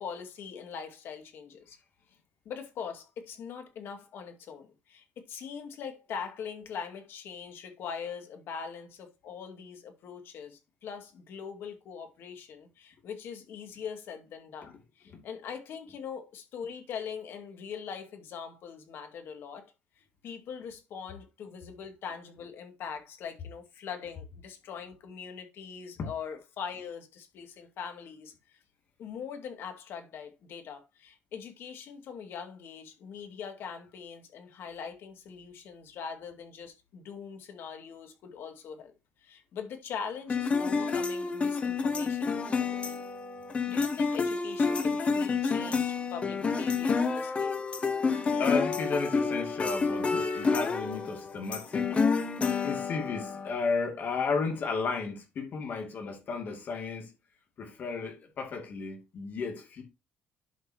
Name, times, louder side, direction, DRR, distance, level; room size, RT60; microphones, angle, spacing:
voice 1, 0.0-1.8 2.5-19.7 20.2-28.6 29.0-38.9 39.2-42.5 42.8-43.0 43.6-47.7, left 6 dB, 65° left, 2.3 m, -42 dB
sound 1, 40.3-53.5, left 4 dB, 30° left, 1.2 m, -29 dB
voice 2, 48.4-52.0 52.6-57.2 57.6-59.8, left 4 dB, 50° left, 2.5 m, -33 dB
11.5 x 5.5 x 2.9 m
cardioid pair, 125°, 4 cm